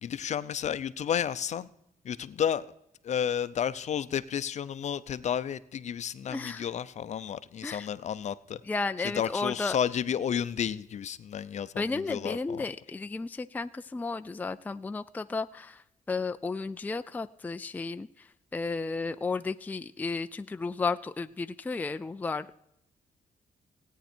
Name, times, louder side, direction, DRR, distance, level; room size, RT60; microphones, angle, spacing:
voice 1, 0.0-1.7 2.0-2.7 3.0-8.6 9.0-12.7, left 8 dB, 55° left, 14 dB, 0.6 m, -32 dB
voice 2, 6.3-6.7 7.6-7.9 8.6-9.8 11.8-22.6, left 4 dB, 10° left, 10 dB, 0.4 m, -33 dB
17.5 x 9.1 x 4.4 m, 0.79 s
cardioid pair, 130°, 14 cm